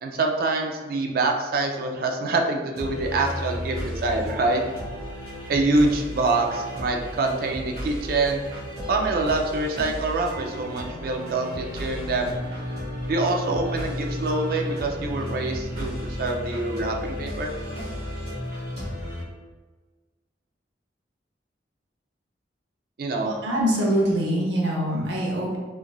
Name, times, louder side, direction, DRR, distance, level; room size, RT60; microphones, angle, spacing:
voice 1, 0.0-4.6 5.5-8.4 8.9-12.3 13.1-17.5 23.0-23.3, right 3 dB, 55° right, 2 dB, 0.4 m, -25 dB
sound 1, 2.7-19.2, left 1 dB, 35° right, 1.0 m, -33 dB
voice 2, 23.2-25.6, equal, 80° right, -3 dB, 0.7 m, -24 dB
3.1 x 2.4 x 2.2 m, 1.3 s
head